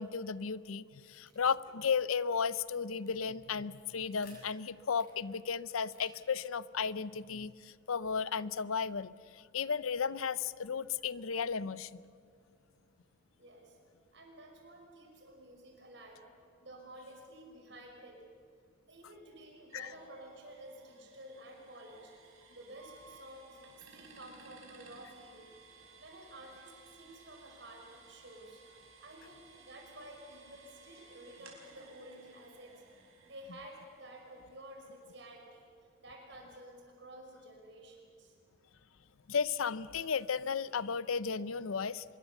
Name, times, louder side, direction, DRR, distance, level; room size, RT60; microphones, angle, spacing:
voice 1, 0.0-12.0 19.7-19.9 39.3-42.0, left 6 dB, 85° left, 17 dB, 0.6 m, -34 dB
sound 1, 1.2-9.1, left 2 dB, 45° left, 7.9 m, -65 dB
voice 2, 13.4-13.8 14.1-16.3 16.6-18.2 18.9-25.5 26.0-28.6 29.0-32.7 33.2-35.7 36.0-38.4, right 1 dB, 55° right, 1 dB, 5.9 m, -52 dB
sound 2, 19.7-35.4, right 4 dB, 85° right, 5.2 m, -59 dB
25.0 x 22.0 x 7.1 m, 2.4 s
head